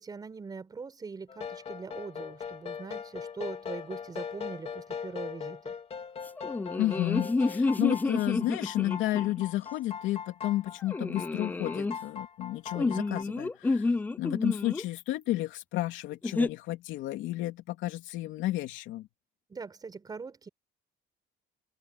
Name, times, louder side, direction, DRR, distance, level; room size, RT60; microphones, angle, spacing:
voice 1, 0.0-5.7 19.5-20.5, right 4 dB, 20° right, 5.2 m, -42 dB
sound 1, 1.3-13.2, left 7 dB, 30° left, 2.8 m, -40 dB
sound 2, 6.4-9.4 10.9-12.0 12.7-14.8 16.2-16.5, left 3 dB, 10° left, 0.4 m, -29 dB
voice 2, 6.8-19.1, left 15 dB, 85° left, 2.9 m, -32 dB
cardioid pair, 175°, 19 cm